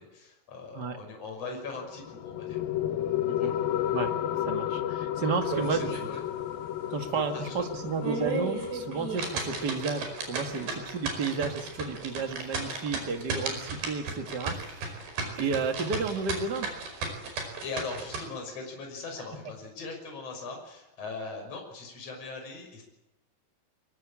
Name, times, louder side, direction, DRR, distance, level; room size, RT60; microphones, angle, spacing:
voice 1, 0.0-2.6 3.4-3.6 5.6-6.2 7.1-7.5 17.4-22.8, left 3 dB, 35° left, 2 dB, 6.9 m, -40 dB
sound 1, 1.7-12.7, left 11 dB, 70° left, 2.5 m, -33 dB
voice 2, 4.4-5.9 6.9-15.1 15.3-16.7, right 4 dB, 45° right, 5 dB, 1.4 m, -32 dB
sound 2, 5.4-6.2 6.5-6.6 7.1-7.2 7.8-18.2, right 4 dB, 65° right, 7.0 m, -34 dB
24.0 x 22.5 x 8.8 m, 0.93 s
omnidirectional pair, 4.9 m